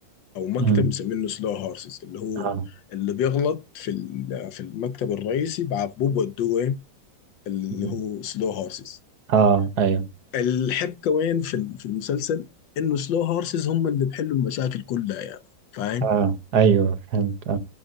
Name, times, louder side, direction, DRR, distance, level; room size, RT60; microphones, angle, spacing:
voice 1, 0.3-2.5 2.9-6.8 7.5-9.0 10.3-12.5 12.8-15.4 15.7-16.1, left 8 dB, 80° left, 1.5 m, -26 dB
voice 2, 9.3-10.1 16.0-17.6, right 6 dB, 65° right, 1.4 m, -21 dB
12.0 x 7.4 x 2.6 m
omnidirectional pair, 2.0 m